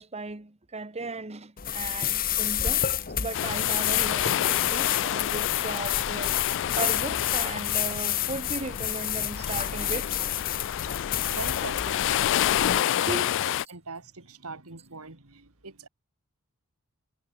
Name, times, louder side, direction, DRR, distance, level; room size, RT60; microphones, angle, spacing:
voice 1, 0.0-2.9 3.1-10.4 10.6-10.8 11.1-11.3 11.6-11.7 13.1-13.3, right 3 dB, 30° right, 1.4 m, -36 dB
sound 1, 1.6-12.8, left 11 dB, 40° left, 1.1 m, -29 dB
sound 2, 3.3-13.6, left 12 dB, 55° left, 0.3 m, -29 dB
voice 2, 11.3-15.9, right 4 dB, 75° right, 2.5 m, -42 dB
head